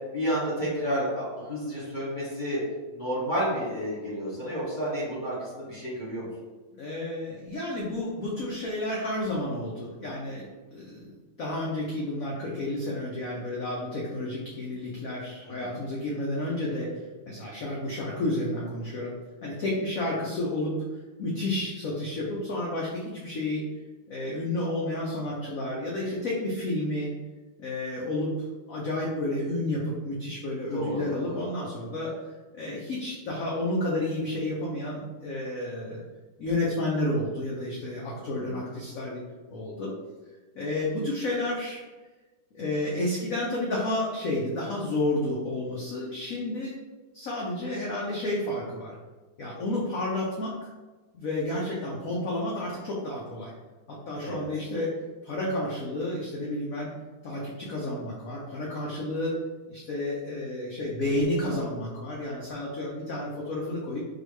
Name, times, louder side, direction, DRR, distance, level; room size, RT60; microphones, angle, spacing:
voice 1, 0.1-2.6 2.9-6.3 15.4-15.7 30.7-31.5 38.4-38.6 54.2-54.5, equal, 30° left, -10 dB, 1.2 m, -31 dB
voice 2, 6.8-11.1 11.4-19.1 19.4-20.8 21.2-23.7 24.1-27.1 27.6-28.3 28.7-32.1 32.5-36.0 36.4-39.2 39.5-39.9 40.5-41.8 42.5-46.7 47.1-48.9 49.4-50.5 51.1-53.5 53.9-54.9 55.2-56.9 57.2-59.4 59.7-64.0, left 1 dB, 75° left, -4 dB, 0.7 m, -31 dB
4.1 x 2.9 x 3.1 m, 1.2 s
omnidirectional pair, 2.3 m